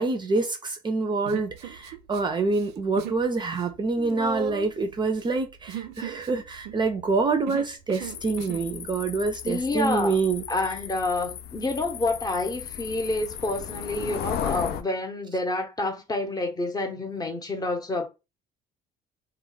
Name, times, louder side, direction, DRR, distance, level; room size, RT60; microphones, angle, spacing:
voice 1, 0.0-10.8, right 3 dB, 25° right, 0.4 m, -26 dB
Human voice, 1.3-2.2 2.5-3.2 3.5-8.7, right 8 dB, 85° right, 0.4 m, -37 dB
sound 1, 8.0-14.8, left 9 dB, 70° left, 0.4 m, -36 dB
voice 2, 9.4-10.2 10.5-18.1, left 2 dB, 20° left, 0.7 m, -28 dB
2.2 x 2.1 x 3.8 m
cardioid pair, 110°, 17 cm